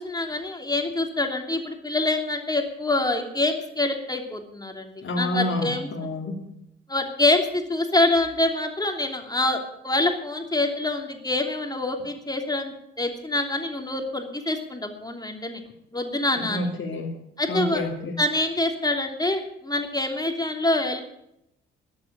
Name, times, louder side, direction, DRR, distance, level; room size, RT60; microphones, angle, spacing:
voice 1, 0.0-5.9 6.9-15.6 15.9-16.7 17.4-17.8 18.2-21.0, left 2 dB, 15° left, 4 dB, 3.0 m, -26 dB
voice 2, 5.0-6.4 16.5-17.1 17.5-18.2, left 1 dB, 40° left, -1 dB, 2.7 m, -28 dB
13.5 x 10.5 x 8.4 m, 0.80 s
figure-of-eight pair, 45°, 29 cm